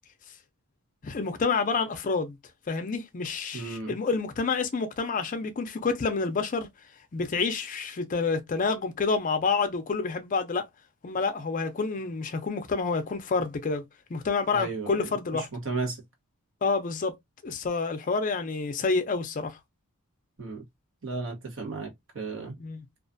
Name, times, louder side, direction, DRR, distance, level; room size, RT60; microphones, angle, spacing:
voice 1, 1.0-2.4 2.7-6.7 7.1-10.7 11.0-13.8 14.1-15.5 16.6-17.1 17.4-19.6 22.6-22.8, left 4 dB, 35° left, 0.4 m, -28 dB
voice 2, 3.5-3.9 14.5-16.0 20.4-20.6 21.0-22.6, right 3 dB, 60° right, 0.9 m, -34 dB
2.4 x 2.2 x 2.5 m
head